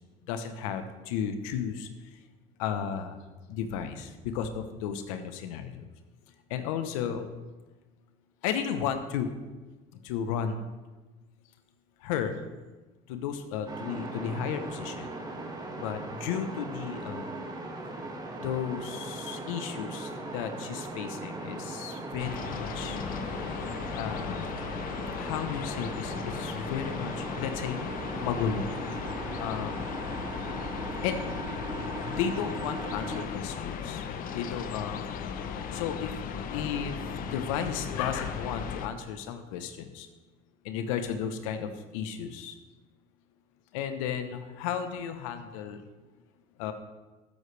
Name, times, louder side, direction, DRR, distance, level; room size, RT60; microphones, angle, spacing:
voice 1, 0.3-1.9 2.6-3.2 3.5-5.7 6.5-7.3 8.4-9.3 10.0-10.6 12.0-12.4 13.1-15.1 15.8-17.3 18.4-23.0 23.9-24.7 25.1-27.8 28.2-28.7 29.4-29.8 31.0-31.2 32.0-34.1 34.3-35.0 35.7-36.1 36.5-37.0 37.3-40.1 40.6-42.5 43.7-45.8 46.6-46.7, left 8 dB, 90° left, 9 dB, 1.1 m, -33 dB
sound 1, 13.7-33.3, right 2 dB, 25° right, 2.1 m, -39 dB
sound 2, 22.2-38.9, left 7 dB, 55° left, 1.0 m, -36 dB
12.5 x 10.0 x 3.4 m, 1.2 s
supercardioid pair, 90°, 17 cm